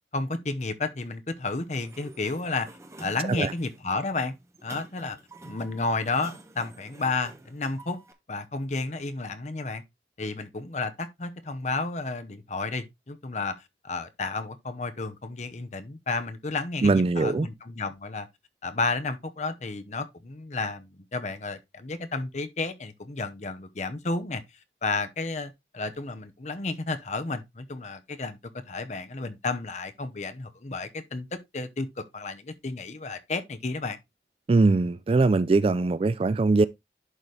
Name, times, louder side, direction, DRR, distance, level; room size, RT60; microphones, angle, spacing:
voice 1, 0.1-2.7 3.0-4.3 4.6-5.2 5.4-8.0 8.3-9.8 10.2-13.6 13.8-18.3 18.6-24.4 24.8-28.4 28.7-31.3 31.5-31.9 32.1-34.0, left 3 dB, 40° left, 0.8 m, -32 dB
Sliding door, 1.6-8.1, right 2 dB, 15° right, 0.9 m, -49 dB
voice 2, 16.8-17.5 34.5-36.7, right 3 dB, 30° right, 0.3 m, -21 dB
11.0 x 4.0 x 3.2 m
head